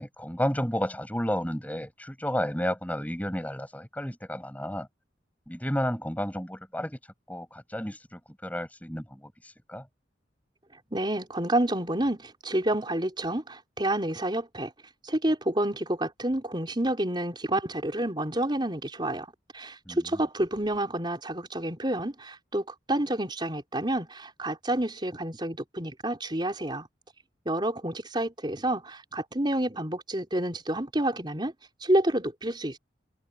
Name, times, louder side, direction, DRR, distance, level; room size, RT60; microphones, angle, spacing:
voice 1, 0.0-4.9 5.5-7.0 7.3-9.9 19.9-20.2, equal, 10° left, 5.8 m, -32 dB
voice 2, 10.9-14.7 15.0-19.3 19.5-26.9 27.4-31.5 31.8-32.8, right 1 dB, 25° right, 4.9 m, -29 dB
head